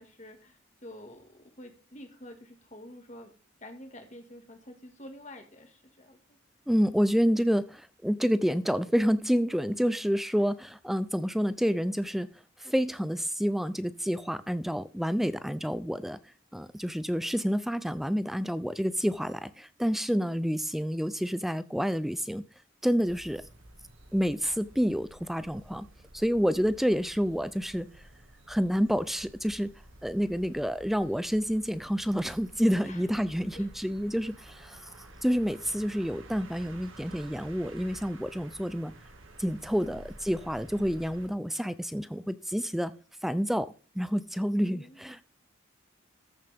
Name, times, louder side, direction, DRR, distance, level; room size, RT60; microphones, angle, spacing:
voice 1, 0.0-3.3 3.6-6.4 20.1-20.6 26.4-26.7 32.8-33.1 33.5-33.7 39.8-40.1 44.6-45.0, left 1 dB, 35° left, 5 dB, 1.9 m, -48 dB
voice 2, 6.7-12.3 12.6-16.2 16.5-22.4 22.8-23.4 24.1-25.9 26.1-27.9 28.5-29.7 30.0-38.9 39.4-42.9 43.2-45.2, equal, ahead, 14 dB, 0.4 m, -28 dB
sound 1, 23.0-41.3, right 1 dB, 80° right, 2.0 m, -51 dB
14.0 x 6.5 x 3.5 m, 0.37 s
head